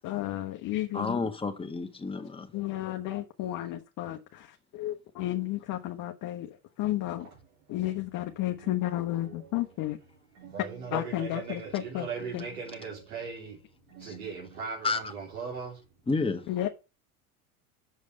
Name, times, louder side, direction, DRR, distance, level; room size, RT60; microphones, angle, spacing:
voice 1, 0.0-1.3 2.5-6.5 6.8-7.3 7.7-10.0 10.9-12.1 12.3-12.4 16.5-16.7, left 14 dB, 45° left, 1.0 m, -32 dB
voice 2, 0.9-2.5 14.0-14.1 14.8-15.1 16.1-16.5, left 4 dB, 10° left, 1.4 m, -30 dB
voice 3, 8.6-9.8 10.3-15.8, right 5 dB, 85° right, 3.6 m, -39 dB
6.6 x 5.1 x 6.5 m
hypercardioid pair, 95°, 43 cm